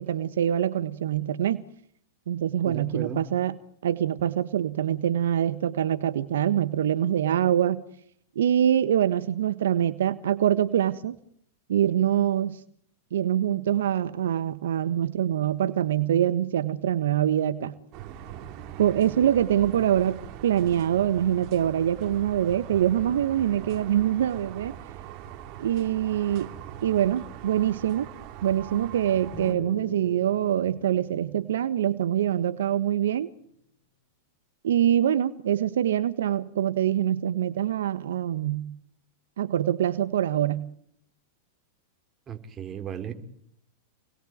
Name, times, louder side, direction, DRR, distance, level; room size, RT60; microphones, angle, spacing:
voice 1, 0.0-1.6 2.3-3.6 3.8-7.8 8.3-11.2 11.7-12.6 13.1-17.7 18.8-24.8 25.6-26.5 26.8-28.1 28.4-33.3 34.6-38.6 39.4-40.6, right 10 dB, 75° right, 12 dB, 1.3 m, -24 dB
voice 2, 2.6-3.2 42.3-43.1, right 7 dB, 25° right, 6 dB, 4.5 m, -35 dB
sound 1, 17.9-29.5, right 10 dB, 45° right, 3.5 m, -41 dB
sound 2, 29.3-32.9, left 3 dB, 30° left, 6.7 m, -45 dB
28.5 x 21.0 x 9.4 m, 0.68 s
hypercardioid pair, 100°, 0 cm